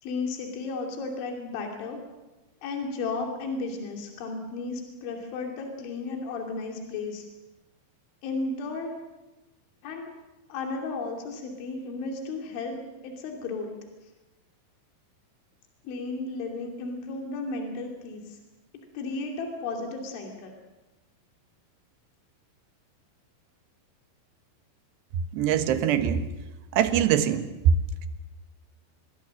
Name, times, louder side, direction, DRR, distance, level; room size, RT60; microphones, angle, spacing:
voice 1, 0.0-2.0 2.6-7.2 8.2-8.9 9.8-10.1 10.5-12.8 13.0-13.7 15.8-18.4 18.9-20.5, left 3 dB, 75° left, 2 dB, 5.1 m, -34 dB
voice 2, 25.3-26.2 26.7-28.1, right 8 dB, 70° right, 9 dB, 3.2 m, -23 dB
27.5 x 21.0 x 7.6 m, 1.1 s
omnidirectional pair, 5.4 m